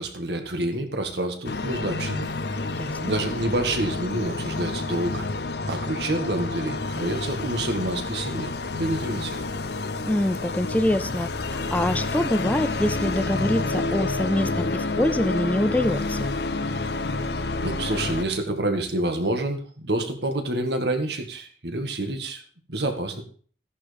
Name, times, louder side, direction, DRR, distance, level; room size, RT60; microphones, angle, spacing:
voice 1, 0.0-2.3 3.0-5.3 5.7-9.4 17.6-22.4 22.7-23.2, right 1 dB, 75° right, 5 dB, 1.9 m, -28 dB
sound 1, 1.4-18.2, left 3 dB, 70° left, 0.8 m, -29 dB
voice 2, 10.1-16.3, left 1 dB, 10° left, 12 dB, 0.4 m, -25 dB
14.0 x 10.5 x 3.5 m, 0.44 s
head